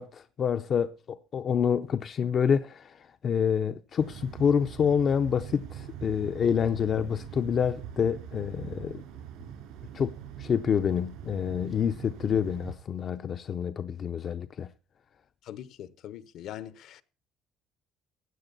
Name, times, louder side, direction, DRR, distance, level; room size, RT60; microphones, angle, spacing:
voice 1, 0.0-9.0 9.9-10.1 10.4-14.7, left 7 dB, 35° left, 0.5 m, -27 dB
sound 1, 4.0-12.7, right 9 dB, 80° right, 3.8 m, -43 dB
voice 2, 15.4-17.0, left 11 dB, 55° left, 0.8 m, -42 dB
16.0 x 9.9 x 4.0 m
cardioid pair, 170°, 0 cm